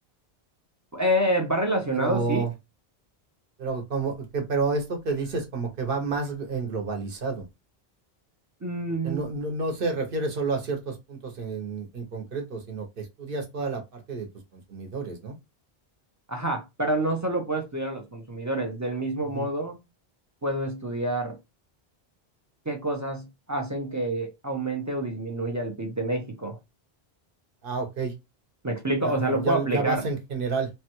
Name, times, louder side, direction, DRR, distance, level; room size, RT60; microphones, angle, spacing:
voice 1, 0.9-2.4 8.6-9.2 16.3-19.8 20.4-21.4 22.7-26.6 28.6-30.0, right 1 dB, 25° right, 0.4 m, -28 dB
voice 2, 1.9-2.5 3.6-7.5 9.0-14.3 14.5-15.3 19.3-19.5 27.6-28.1 29.0-30.7, right 4 dB, 60° right, 1.0 m, -30 dB
3.1 x 2.2 x 2.9 m
omnidirectional pair, 1.0 m